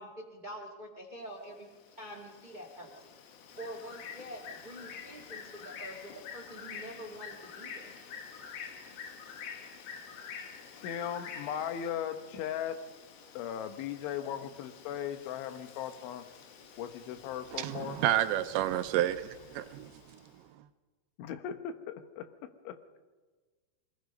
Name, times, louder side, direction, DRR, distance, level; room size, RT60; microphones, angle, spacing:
voice 1, 0.0-1.7 2.0-7.9, equal, 20° right, 2 dB, 1.1 m, -46 dB
Bird, 1.5-20.2, left 6 dB, 65° left, 3.2 m, -48 dB
voice 2, 10.8-12.8 13.4-16.3 16.8-18.0 21.2-22.3 22.7-22.8, left 9 dB, 90° left, 9 dB, 3.6 m, -37 dB
voice 3, 17.5-20.2, right 13 dB, 80° right, 11 dB, 3.0 m, -30 dB
24.5 x 20.0 x 5.3 m, 1.4 s
omnidirectional pair, 5.3 m